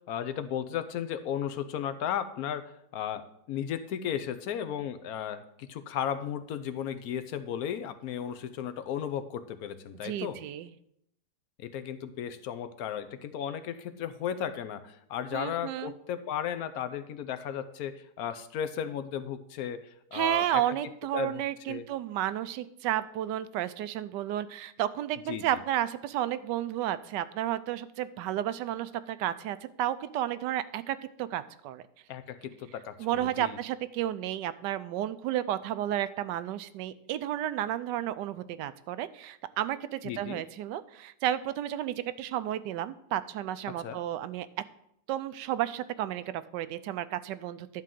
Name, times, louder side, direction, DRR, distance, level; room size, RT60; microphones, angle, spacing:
voice 1, 0.1-10.4 11.6-20.6 21.1-21.4 21.7-21.9 25.3-25.6 32.1-33.6 40.0-40.4 43.8-44.0, left 9 dB, 65° left, 11 dB, 1.1 m, -35 dB
voice 2, 10.0-10.7 15.3-16.0 20.1-31.8 33.0-44.5 45.1-47.8, right 12 dB, 85° right, 14 dB, 1.2 m, -32 dB
11.0 x 3.8 x 7.5 m, 0.75 s
omnidirectional pair, 1.8 m